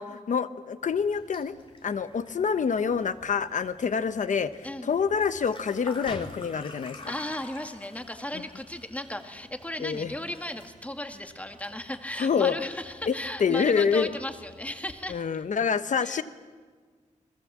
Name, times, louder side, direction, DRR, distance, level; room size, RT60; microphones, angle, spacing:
voice 1, 0.0-1.5 1.8-4.5 4.8-7.0 8.3-8.4 9.8-10.1 12.2-12.6 13.1-13.2 13.4-14.1 15.1-16.2, left 6 dB, 70° left, 11 dB, 1.1 m, -26 dB
sound 1, 0.9-15.1, left 2 dB, 40° left, 3.0 m, -49 dB
voice 2, 7.1-15.2 16.0-16.2, left 1 dB, 10° left, 5 dB, 1.9 m, -36 dB
29.5 x 22.0 x 7.5 m, 1.5 s
wide cardioid pair, 110°, 13 cm